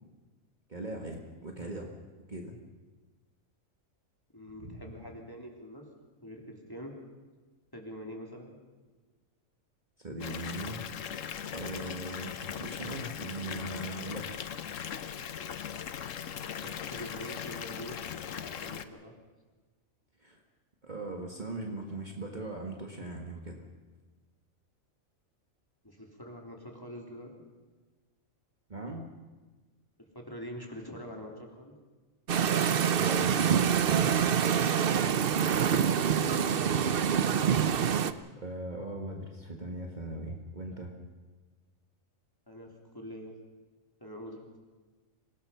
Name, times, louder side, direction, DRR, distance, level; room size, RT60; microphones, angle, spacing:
voice 1, 0.7-1.9 2.3-2.6 4.6-4.8 10.0-10.8 11.5-14.4 20.2-20.4 20.8-23.6 28.7-29.1 33.0-34.3 38.4-40.9, right 2 dB, 35° right, 1 dB, 1.8 m, -40 dB
voice 2, 4.3-5.8 6.2-6.9 7.7-8.6 16.6-18.0 18.4-19.1 25.8-27.3 30.0-31.7 36.0-36.6 42.5-43.3 44.0-44.4, equal, 15° left, 0 dB, 3.2 m, -44 dB
Water tap faucet / Bathtub (filling or washing) / Fill (with liquid), 10.2-18.8, left 8 dB, 70° left, 1.2 m, -39 dB
sound 1, 32.3-38.1, right 8 dB, 50° right, 0.8 m, -26 dB
26.0 x 18.0 x 5.7 m, 1.3 s
omnidirectional pair, 1.4 m